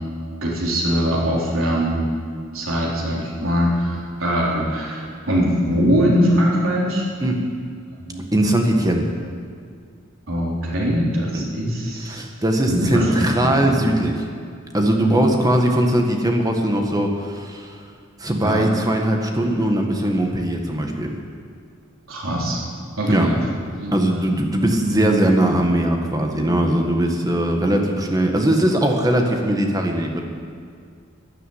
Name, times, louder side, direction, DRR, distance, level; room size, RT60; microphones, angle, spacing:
voice 1, 0.4-2.0 2.5-7.1 8.0-8.3 10.3-12.2 12.7-13.7 18.4-18.7 22.1-22.6 23.0-23.4 23.8-24.2, equal, 85° right, -4 dB, 3.8 m, -22 dB
voice 2, 8.3-9.1 11.3-11.4 12.0-14.2 14.7-17.7 18.2-21.1 23.0-23.3 23.9-30.2, right 1 dB, 20° right, 2 dB, 1.6 m, -20 dB
13.0 x 10.5 x 8.6 m, 2.2 s
head